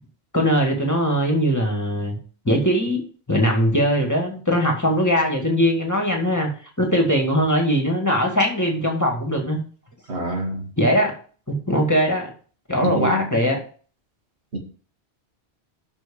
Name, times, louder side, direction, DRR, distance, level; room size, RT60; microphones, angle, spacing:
voice 1, 0.3-2.2 2.5-6.5 6.8-9.6 10.8-11.1 11.5-12.3 12.7-13.6, equal, 15° left, 1 dB, 2.0 m, -20 dB
voice 2, 10.1-10.6 12.8-13.2 14.5-14.6, right 2 dB, 80° right, 1 dB, 2.2 m, -26 dB
6.2 x 6.1 x 7.1 m, 0.41 s
omnidirectional pair, 1.1 m